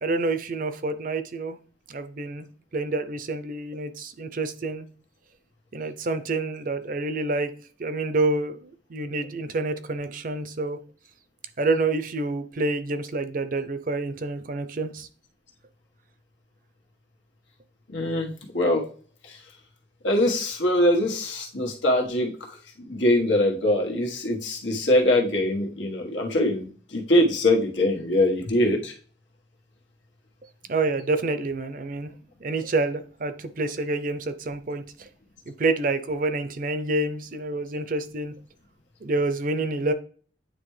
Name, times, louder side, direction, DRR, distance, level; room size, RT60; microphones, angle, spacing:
voice 1, 0.0-1.6 1.9-2.5 2.7-4.9 5.7-7.5 7.8-10.8 11.6-15.1 30.7-32.1 32.4-35.1 35.5-38.3 39.0-39.9, right 2 dB, 50° right, 11 dB, 0.6 m, -28 dB
voice 2, 17.9-18.8 19.2-19.4 20.0-22.3 22.9-28.9, left 1 dB, 85° left, 0 dB, 1.5 m, -23 dB
9.1 x 3.4 x 3.3 m, 0.43 s
head